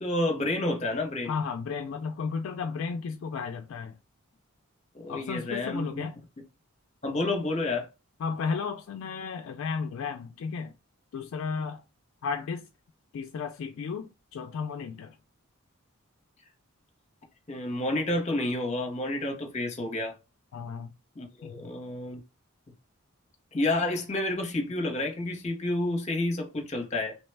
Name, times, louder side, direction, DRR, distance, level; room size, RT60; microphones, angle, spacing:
voice 1, 0.0-1.3 4.9-6.0 7.0-7.9 17.5-20.1 21.2-22.2 23.5-27.2, left 2 dB, 30° left, 0.7 m, -29 dB
voice 2, 1.2-4.0 5.1-6.2 8.2-10.7 11.1-11.8 12.2-12.7 13.1-15.2 20.5-20.9 21.4-21.7, left 5 dB, 65° left, 0.3 m, -34 dB
3.1 x 2.1 x 3.2 m
head